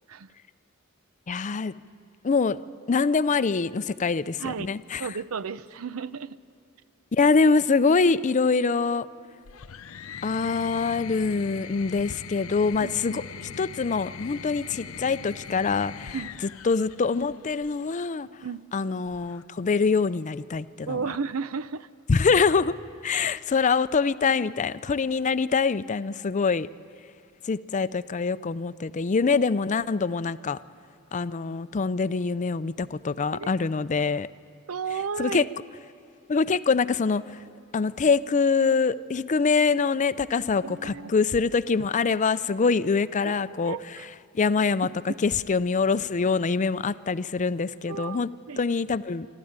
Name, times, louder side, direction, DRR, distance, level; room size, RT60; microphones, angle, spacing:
voice 1, 1.3-1.7 2.2-2.6 2.9-5.1 7.1-9.1 10.2-16.2 16.6-18.3 18.7-21.0 22.1-22.7 23.0-26.7 27.4-30.6 31.1-34.3 35.2-35.4 36.3-37.4 37.7-43.8 44.3-48.3 48.6-49.3, left 4 dB, 35° left, 15 dB, 0.5 m, -24 dB
voice 2, 5.0-6.4 12.8-13.2 16.1-16.3 18.4-18.6 20.9-21.9 23.1-23.3 33.3-33.5 34.7-35.5 40.6-41.1 43.2-44.1 47.9-48.2 48.5-48.6, right 5 dB, 90° right, 16 dB, 0.6 m, -33 dB
sound 1, 9.4-17.9 19.1-19.7, left 6 dB, 80° left, 0.6 m, -41 dB
25.5 x 13.0 x 8.8 m, 2.7 s
head